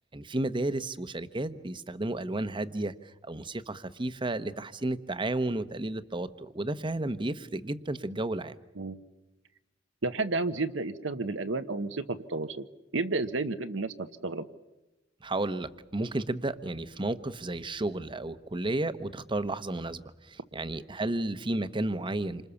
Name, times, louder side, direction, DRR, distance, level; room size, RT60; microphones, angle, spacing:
voice 1, 0.1-2.9 3.2-8.5 15.2-22.5, right 2 dB, 25° right, 12 dB, 1.0 m, -32 dB
voice 2, 10.0-12.7 12.9-14.4, right 3 dB, 80° right, 8 dB, 1.1 m, -31 dB
28.0 x 26.0 x 7.1 m, 1.0 s
head